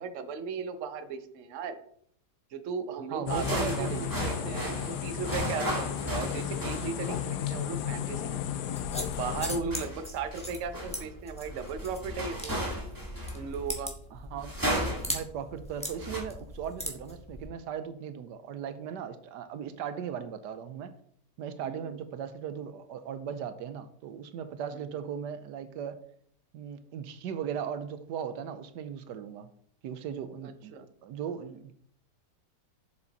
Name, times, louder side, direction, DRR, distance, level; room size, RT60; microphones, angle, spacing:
voice 1, 0.0-1.8 2.5-3.9 4.2-8.4 9.2-12.5 13.3-13.9 21.6-21.8 24.7-24.8 30.4-30.9, right 5 dB, 55° right, 9 dB, 0.9 m, -36 dB
voice 2, 3.1-4.1 14.1-14.7 15.0-20.9 21.4-26.0 26.5-29.5 29.8-30.7 31.0-31.7, right 8 dB, 80° right, 11 dB, 1.2 m, -38 dB
sound 1, 3.3-9.6, left 9 dB, 75° left, 1.2 m, -34 dB
sound 2, 3.3-7.4 9.1-13.6 14.4-15.2 15.8-16.2, equal, 10° right, 1.8 m, -35 dB
sound 3, 8.7-17.5, equal, 5° left, 1.3 m, -40 dB
7.1 x 6.8 x 4.0 m, 0.64 s
omnidirectional pair, 1.8 m